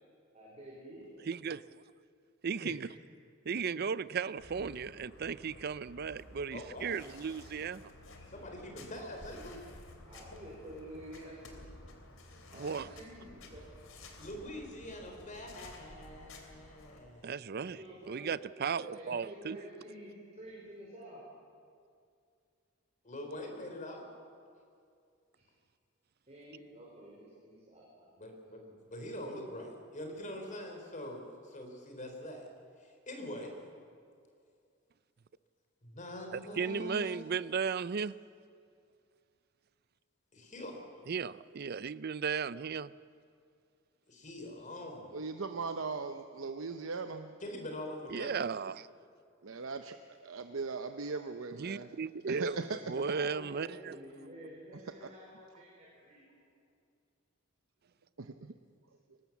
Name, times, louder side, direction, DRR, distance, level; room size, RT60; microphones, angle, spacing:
voice 1, 0.3-1.2 10.0-11.6 12.5-13.7 17.6-18.3 18.7-21.2 25.3-25.4 26.3-28.1 52.1-52.2 53.1-56.4, right 1 dB, 35° right, -5 dB, 5.1 m, -50 dB
voice 2, 1.3-1.6 2.4-2.9 3.5-7.9 12.6-12.9 17.2-17.8 18.1-19.6 36.3-38.2 41.1-42.9 48.1-48.9 51.5-54.0, right 6 dB, 50° right, 17 dB, 0.5 m, -35 dB
sound 1, 4.4-17.0, left 2 dB, 85° left, 3.2 m, -53 dB
voice 3, 6.5-6.9 8.3-9.7 14.2-17.8 23.0-24.1 28.2-32.5 32.8-33.5 35.8-37.2 40.3-40.8 44.1-45.2 47.4-48.7, left 1 dB, 40° left, 3 dB, 4.0 m, -44 dB
voice 4, 45.1-47.3 49.4-49.9 50.2-51.9 52.3-52.8 53.2-53.3 55.0-55.1 58.2-58.5, right 4 dB, 80° right, 7 dB, 0.8 m, -39 dB
23.5 x 19.5 x 7.4 m, 2.3 s
head